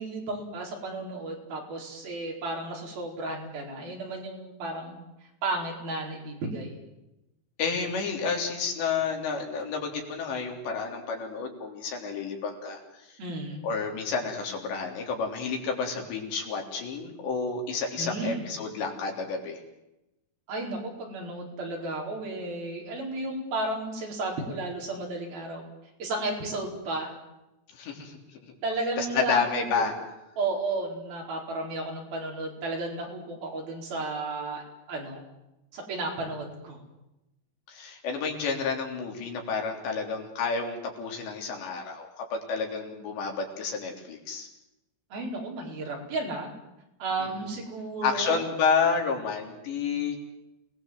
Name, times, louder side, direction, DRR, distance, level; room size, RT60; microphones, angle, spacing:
voice 1, 0.0-5.0 5.4-6.8 13.2-13.7 18.0-18.4 20.5-25.6 26.0-27.1 28.6-29.6 30.4-35.2 35.7-36.8 45.1-46.5 47.0-48.4, right 2 dB, 60° right, 0 dB, 6.2 m, -33 dB
voice 2, 7.6-13.0 13.6-19.6 27.7-28.2 29.0-29.9 37.7-44.5 47.2-47.3 48.0-50.2, left 5 dB, 85° left, 2 dB, 5.8 m, -30 dB
28.5 x 19.5 x 7.7 m, 0.92 s
omnidirectional pair, 4.9 m